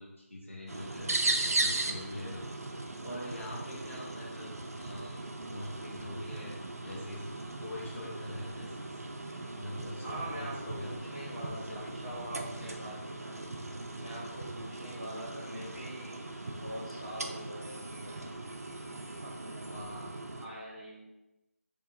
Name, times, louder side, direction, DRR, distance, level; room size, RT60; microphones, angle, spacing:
voice 1, 0.0-2.4 3.0-5.2 5.5-6.5 6.8-7.3 7.6-8.9 9.5-11.0 11.4-13.0 19.7-20.1, left 1 dB, 60° left, -5 dB, 0.6 m, -44 dB
sound 1, 0.7-20.5, right 2 dB, 90° right, 0.4 m, -38 dB
voice 2, 10.0-13.5 13.9-16.3 16.6-18.4 19.2-20.1 20.4-21.0, right 1 dB, 30° left, -8 dB, 0.8 m, -44 dB
2.9 x 2.2 x 2.3 m, 0.96 s
figure-of-eight pair, 180°, 8 cm